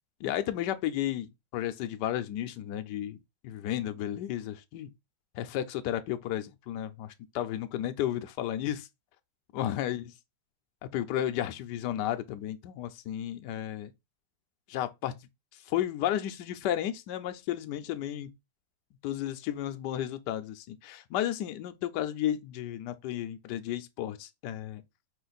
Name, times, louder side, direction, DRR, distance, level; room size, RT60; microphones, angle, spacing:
voice 1, 0.2-3.2 3.4-4.9 5.3-8.9 9.5-10.0 10.9-13.9 14.7-15.1 15.7-18.3 19.0-24.8, left 11 dB, 75° left, 1.2 m, -33 dB
5.2 x 2.5 x 4.0 m
omnidirectional pair, 2.0 m